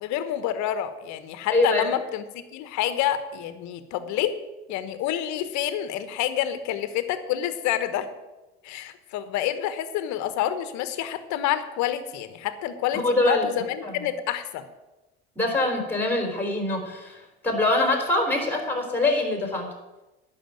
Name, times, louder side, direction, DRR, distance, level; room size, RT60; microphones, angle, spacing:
voice 1, 0.0-4.3 4.7-8.1 8.6-14.6, left 11 dB, 60° left, 11 dB, 1.3 m, -28 dB
voice 2, 1.5-1.8 13.0-13.5 13.8-13.9 15.4-19.7, left 2 dB, 5° left, 2 dB, 3.7 m, -24 dB
10.5 x 6.2 x 8.9 m, 1.1 s
hypercardioid pair, 85°, 32 cm